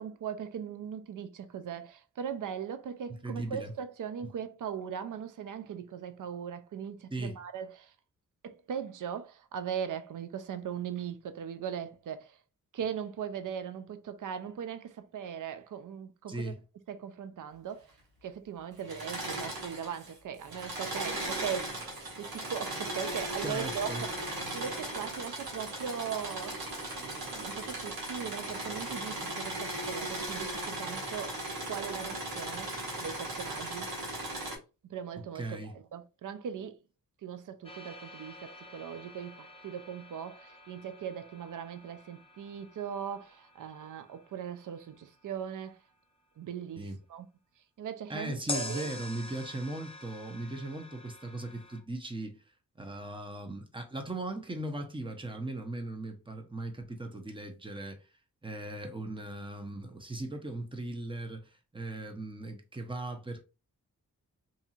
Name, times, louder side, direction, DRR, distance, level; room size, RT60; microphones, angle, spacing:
voice 1, 0.0-7.9 8.4-12.4 12.7-16.5 16.9-17.9 18.2-24.1 24.5-31.4 31.7-33.9 34.9-36.8 37.2-45.8 46.4-47.3 47.8-48.9, right 8 dB, 60° right, 0.5 m, -39 dB
voice 2, 3.2-3.7 7.1-7.4 16.3-16.6 23.4-24.0 35.3-35.7 46.8-47.0 48.1-52.4 52.8-58.0 58.4-63.4, right 2 dB, 15° right, 0.8 m, -38 dB
Engine / Mechanisms, 18.8-20.1 20.4-34.6, right 1 dB, 85° right, 1.2 m, -37 dB
sound 1, 37.6-45.6 48.5-51.8, left 2 dB, 15° left, 0.7 m, -46 dB
2.7 x 2.6 x 2.4 m
cardioid pair, 50°, 35 cm